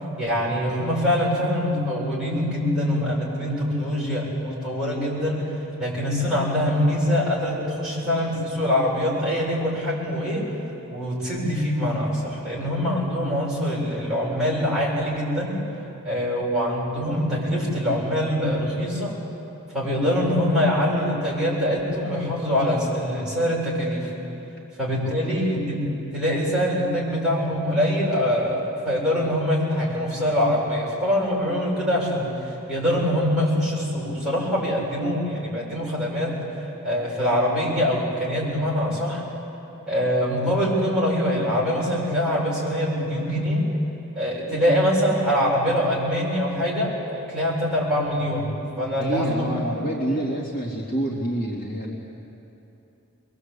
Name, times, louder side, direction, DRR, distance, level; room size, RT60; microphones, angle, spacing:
voice 1, 0.2-5.5 5.8-10.4 10.9-15.6 16.0-19.1 19.7-24.1 24.8-32.3 32.7-36.4 36.8-39.2 39.9-43.6 44.1-48.5 48.8-49.5, equal, 5° right, -7 dB, 7.2 m, -24 dB
voice 2, 49.0-51.9, right 1 dB, 40° left, -4 dB, 2.8 m, -27 dB
23.5 x 23.0 x 8.4 m, 2.9 s
head